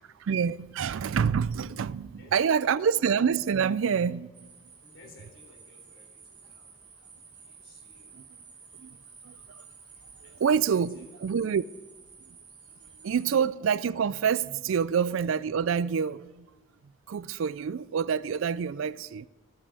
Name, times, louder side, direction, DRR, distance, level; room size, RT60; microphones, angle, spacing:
voice 1, 0.0-4.5 8.1-8.2 8.8-9.0 9.2-9.6 10.4-11.6 12.3-12.4 13.0-16.5 17.1-19.3, right 7 dB, 75° right, 0.4 m, -27 dB
voice 2, 1.8-2.5 4.8-8.2 9.9-11.0 12.8-12.9, left 3 dB, 70° left, 3.6 m, -57 dB
sound 1, 4.3-13.4, right 5 dB, 20° right, 2.4 m, -52 dB
13.5 x 7.6 x 8.2 m
head